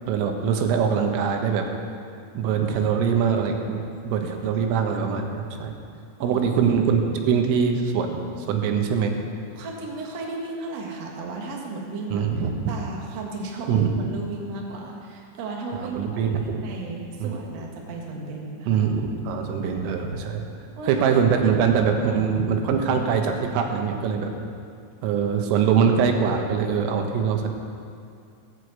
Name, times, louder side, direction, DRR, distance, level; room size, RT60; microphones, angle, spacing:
voice 1, 0.1-1.7 2.4-3.8 4.1-5.7 6.2-9.1 12.1-12.5 13.7-13.9 15.7-16.6 17.2-17.3 18.7-20.5 20.9-24.3 25.0-27.5, right 6 dB, 85° right, 4 dB, 3.7 m, -23 dB
voice 2, 6.2-6.5 9.5-12.3 12.7-18.8 19.6-20.1 20.7-21.0 21.5-21.6, right 3 dB, 60° right, -1 dB, 1.7 m, -35 dB
16.0 x 8.4 x 8.1 m, 2.4 s
omnidirectional pair, 5.7 m